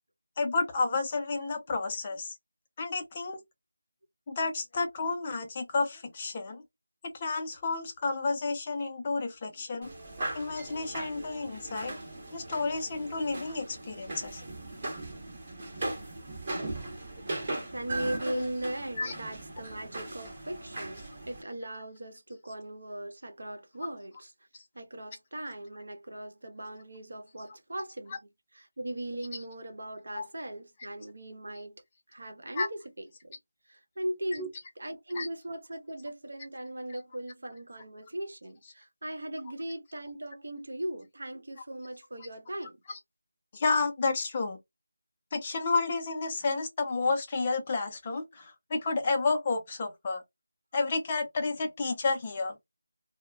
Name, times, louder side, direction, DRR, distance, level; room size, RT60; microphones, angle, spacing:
voice 1, 0.4-2.4 2.8-3.4 4.3-6.6 7.0-9.9 10.3-11.9 12.3-14.4 18.3-18.5 19.0-19.1 28.1-28.2 30.1-30.3 32.6-32.7 34.4-34.5 35.2-35.3 42.9-43.0 43.5-44.6 45.3-50.2 50.7-52.6, left 3 dB, 20° left, 0.4 m, -31 dB
sound 1, 9.8-21.4, right 2 dB, 25° right, 0.9 m, -39 dB
voice 2, 17.7-24.3 24.7-28.2 28.5-31.8 32.1-33.4 33.7-34.5 34.8-42.8, right 1 dB, 60° right, 0.9 m, -38 dB
2.1 x 2.0 x 3.3 m
figure-of-eight pair, 175°, 0 cm